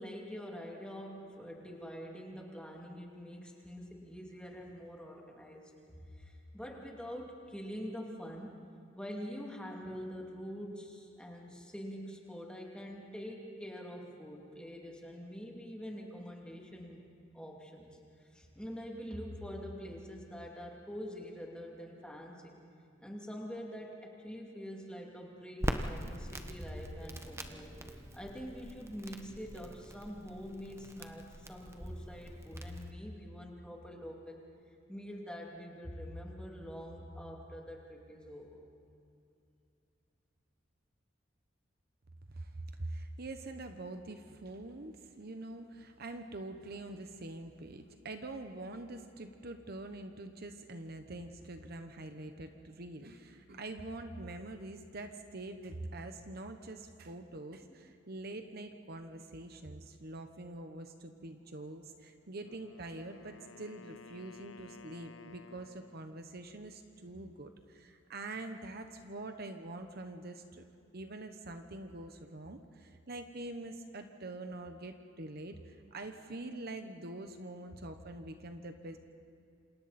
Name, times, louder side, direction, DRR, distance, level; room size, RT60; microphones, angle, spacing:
voice 1, 0.0-8.5 8.9-17.1 17.3-22.6 23.0-27.8 28.1-34.4 34.9-38.6, equal, 5° left, -1 dB, 2.7 m, -45 dB
Crackle, 25.6-32.9, right 1 dB, 15° right, 1.1 m, -42 dB
sound 1, 26.3-32.3, equal, 30° left, 4.6 m, -62 dB
voice 2, 42.3-70.6 70.9-79.0, right 2 dB, 55° right, 7 dB, 1.1 m, -45 dB
Wind instrument woodwind instrument, 62.3-66.2, left 5 dB, 85° left, 0.8 m, -55 dB
28.0 x 27.0 x 4.3 m, 2.6 s
head